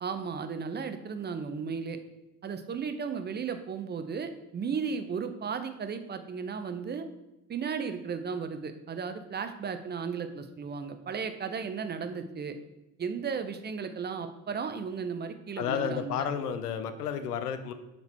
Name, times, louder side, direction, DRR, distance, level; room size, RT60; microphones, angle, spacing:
voice 1, 0.0-2.0 2.4-7.1 7.5-12.6 13.0-16.3, right 6 dB, 25° right, 9 dB, 0.6 m, -35 dB
voice 2, 15.6-17.7, left 8 dB, 75° left, 9 dB, 0.6 m, -31 dB
6.6 x 4.5 x 4.4 m, 0.97 s
figure-of-eight pair, 50°, 46 cm